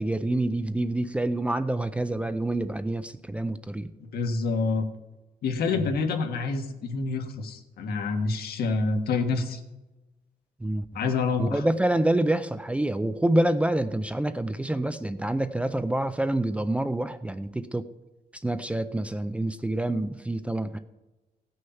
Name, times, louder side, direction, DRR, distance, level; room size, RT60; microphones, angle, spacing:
voice 1, 0.0-3.9 10.6-10.8 11.4-17.9 18.3-20.8, right 1 dB, 10° right, 11 dB, 0.4 m, -27 dB
voice 2, 4.1-4.8 5.4-9.6 10.9-11.6, left 4 dB, 85° left, 4 dB, 1.6 m, -27 dB
17.0 x 6.4 x 5.7 m, 1.1 s
wide cardioid pair, 160°, 16 cm